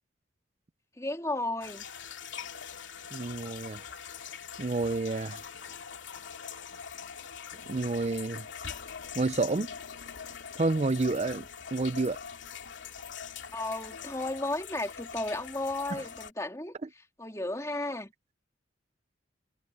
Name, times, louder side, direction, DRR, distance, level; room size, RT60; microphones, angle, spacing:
voice 1, 1.0-1.8 13.5-16.8 17.2-18.1, left 2 dB, 15° left, 3.1 m, -34 dB
sound 1, 1.6-16.3, left 7 dB, 80° left, 2.4 m, -43 dB
voice 2, 3.1-3.8 4.6-5.4 7.7-8.5 9.1-9.7 10.6-12.2 15.9-16.0 16.8-16.9, right 3 dB, 35° right, 0.5 m, -29 dB
head